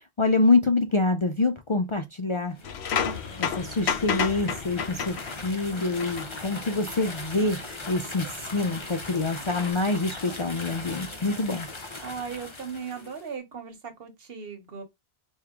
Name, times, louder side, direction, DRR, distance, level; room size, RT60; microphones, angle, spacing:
voice 1, 0.2-2.6 3.4-7.6 7.9-11.7, left 3 dB, 55° left, 0.3 m, -26 dB
sound 1, 2.5-13.3, left 2 dB, 30° left, 0.8 m, -39 dB
sound 2, 2.6-5.6 6.0-6.3 7.9-8.0 9.5-9.7, left 7 dB, 80° left, 1.0 m, -30 dB
voice 2, 12.0-14.8, right 6 dB, 65° right, 1.2 m, -37 dB
4.5 x 2.3 x 3.6 m
omnidirectional pair, 1.1 m